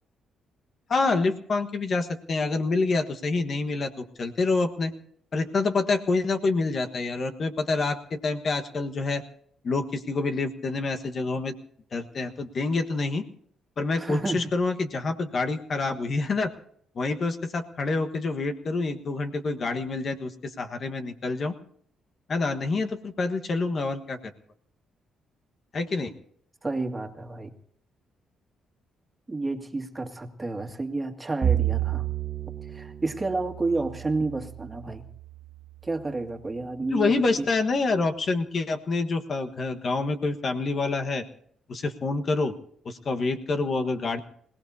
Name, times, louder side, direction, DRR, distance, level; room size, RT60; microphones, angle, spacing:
voice 1, 0.9-4.9 5.3-9.2 9.6-11.5 11.9-13.2 13.8-16.5 16.9-21.5 22.3-24.2 25.7-26.1 36.9-41.2 41.7-42.5 42.8-44.2, left 3 dB, 45° left, 6 dB, 1.4 m, -27 dB
voice 2, 14.0-14.5 26.6-27.5 29.3-32.1 32.6-35.1 35.8-37.5, right 3 dB, 20° right, 4 dB, 2.1 m, -30 dB
Bowed string instrument, 31.4-35.8, right 10 dB, 50° right, 0.8 m, -31 dB
26.5 x 17.5 x 2.8 m, 0.63 s
cardioid pair, 90°, 0 cm